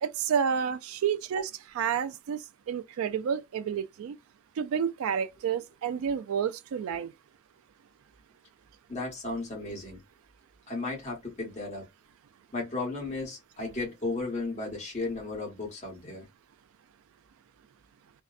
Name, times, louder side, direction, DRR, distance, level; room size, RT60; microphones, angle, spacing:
voice 1, 0.0-4.2 4.6-7.1, right 7 dB, 85° right, 0.3 m, -30 dB
voice 2, 8.9-10.0 10.7-11.8 12.5-16.3, left 3 dB, 30° left, 1.1 m, -34 dB
2.6 x 2.1 x 2.4 m
head